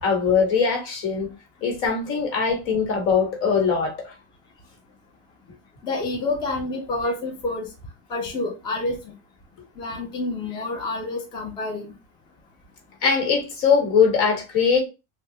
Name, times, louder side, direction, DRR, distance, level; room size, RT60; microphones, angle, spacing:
voice 1, 0.0-1.3 1.6-4.1 13.0-14.8, left 6 dB, 75° left, 1.4 m, -21 dB
voice 2, 5.8-7.7 8.1-9.1 9.8-11.9, left 2 dB, 15° left, 0.3 m, -28 dB
3.3 x 2.3 x 2.7 m
cardioid pair, 170°, 38 cm